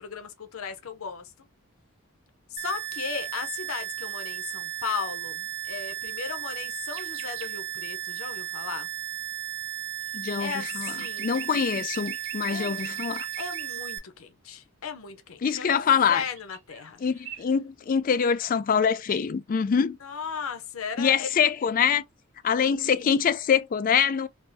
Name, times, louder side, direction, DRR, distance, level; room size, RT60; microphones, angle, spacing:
voice 1, 0.0-1.5 2.5-8.9 10.4-11.3 12.5-12.8 13.4-15.8 16.1-17.0 20.0-21.3 22.8-23.1, left 6 dB, 85° left, 0.6 m, -36 dB
sound 1, 2.6-14.0, right 13 dB, 25° right, 0.8 m, -35 dB
sound 2, 6.9-7.5 10.2-13.8 16.4-16.9 17.2-17.4, right 9 dB, 65° right, 0.6 m, -42 dB
voice 2, 10.1-10.9 11.2-13.3 15.4-16.2 17.0-20.0 21.0-22.0 22.4-24.3, left 7 dB, 40° left, 0.3 m, -24 dB
3.4 x 2.3 x 2.6 m
head